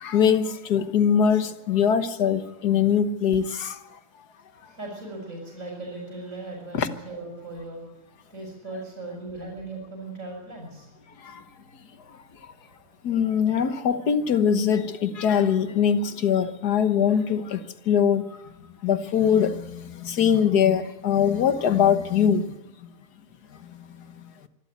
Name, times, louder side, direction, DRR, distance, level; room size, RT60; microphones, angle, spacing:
voice 1, 0.0-3.8 6.7-6.9 13.0-18.2 18.8-19.6 20.0-22.5, left 8 dB, 85° left, 10 dB, 1.7 m, -22 dB
voice 2, 4.5-7.8 8.3-10.9 12.4-13.0, right 2 dB, 55° right, -1 dB, 6.3 m, -38 dB
25.0 x 12.5 x 9.5 m, 0.99 s
omnidirectional pair, 1.7 m